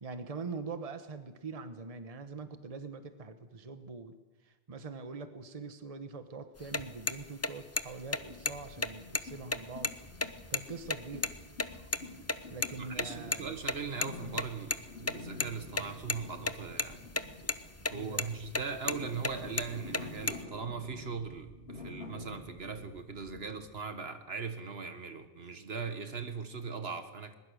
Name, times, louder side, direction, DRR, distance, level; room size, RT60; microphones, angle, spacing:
voice 1, 0.0-4.1 4.4-9.9 10.5-11.3 12.5-13.6 17.9-18.3, right 4 dB, 35° right, 9 dB, 1.2 m, -43 dB
sound 1, 6.6-11.7 11.9-12.0 12.3-12.4 12.6-12.7 13.0-13.1 13.3-13.4 13.7-14.8 15.0-15.5 15.8-16.5 16.8-17.2 17.5-17.9 18.2-18.3 18.6-19.0 19.2-20.4, left 2 dB, 20° left, 0.5 m, -31 dB
sound 2, 8.1-23.6, left 2 dB, 75° left, 5.3 m, -49 dB
voice 2, 12.8-17.0 17.9-27.3, right 5 dB, 70° right, 8 dB, 1.7 m, -40 dB
21.0 x 20.5 x 6.4 m, 1.1 s
omnidirectional pair, 1.1 m